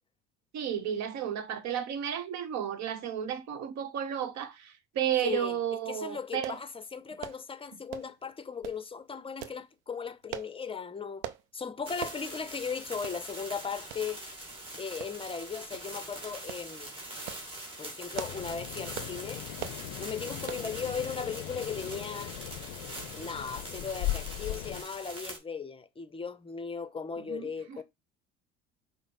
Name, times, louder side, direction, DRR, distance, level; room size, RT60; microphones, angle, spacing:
voice 1, 0.5-6.6 27.2-27.8, right 9 dB, 55° right, 1.0 m, -33 dB
voice 2, 5.2-5.6 5.9-11.2 11.5-14.2 14.8-16.9 17.8-19.4 20.0-22.3 23.1-27.8, left 6 dB, 15° left, 0.6 m, -37 dB
sound 1, 6.4-6.6 7.2-7.4 7.9-8.2 8.6-8.8 9.4-9.6 10.3-10.5 11.2-11.4 12.0-12.2 12.6-12.7 13.0-13.2 13.9-14.1 15.0-15.4 15.7-15.9 16.5-16.7 17.1-17.5 18.0-18.5 18.9-19.2 19.6-19.8 20.5-20.7 21.2-21.4 21.7-21.8, right 11 dB, 75° right, 0.6 m, -41 dB
sound 2, 11.8-25.4, right 1 dB, 15° right, 1.7 m, -43 dB
sound 3, 18.1-24.8, left 16 dB, 65° left, 0.5 m, -39 dB
5.4 x 2.1 x 4.1 m
hypercardioid pair, 75°, 33 cm